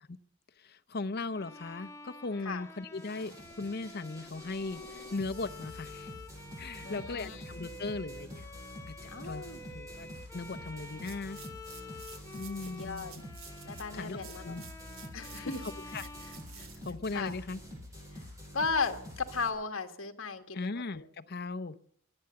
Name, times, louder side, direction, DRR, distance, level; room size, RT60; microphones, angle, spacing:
voice 1, 0.6-6.1 6.6-8.4 8.9-9.5 9.7-11.4 12.3-13.1 13.9-14.6 15.3-16.0 16.8-17.6 20.5-21.8, left 3 dB, 45° left, 12 dB, 0.6 m, -38 dB
Bowed string instrument, 1.3-17.2, left 2 dB, 15° left, 0.9 m, -49 dB
sound 1, 2.9-19.5, left 1 dB, 15° right, 5.7 m, -47 dB
voice 2, 6.8-7.4 9.1-9.6 12.8-13.1 13.6-14.5 15.1-15.7 16.5-16.7 17.1-17.3 18.1-18.2 18.5-21.0, left 4 dB, 60° left, 5 dB, 1.5 m, -36 dB
sound 2, 10.9-18.0, right 8 dB, 70° right, 1.6 m, -53 dB
24.0 x 8.7 x 6.9 m, 0.66 s
head